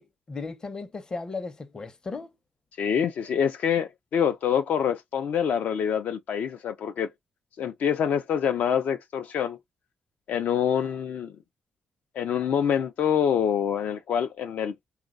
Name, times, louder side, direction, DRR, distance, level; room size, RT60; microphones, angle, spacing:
voice 1, 0.0-2.3, left 4 dB, 25° left, 0.6 m, -36 dB
voice 2, 2.8-7.1 7.6-9.6 10.3-11.3 12.1-14.9, left 8 dB, 65° left, 0.5 m, -26 dB
3.9 x 2.2 x 3.7 m
cardioid pair, 140°, 3 cm